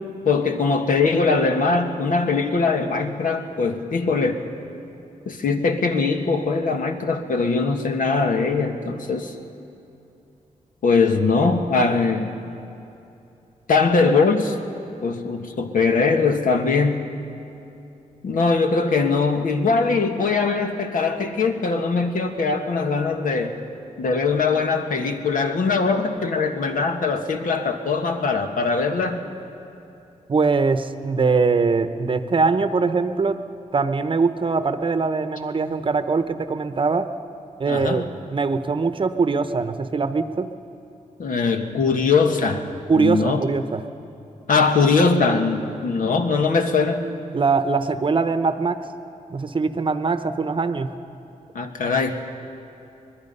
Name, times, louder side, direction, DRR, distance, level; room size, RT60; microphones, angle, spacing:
voice 1, 0.2-4.4 5.2-9.3 10.8-12.3 13.7-14.6 15.0-17.1 18.2-23.5 24.0-29.2 37.7-38.0 41.2-42.7 43.0-43.5 44.5-47.1 51.5-52.2, left 4 dB, 75° left, 5 dB, 1.5 m, -21 dB
voice 2, 30.3-33.4 33.7-37.1 37.6-38.0 38.3-40.5 42.9-43.8 47.3-48.8 49.3-50.9, right 4 dB, 40° right, 10 dB, 0.8 m, -22 dB
24.5 x 20.0 x 5.5 m, 2.8 s
wide cardioid pair, 135°, 14 cm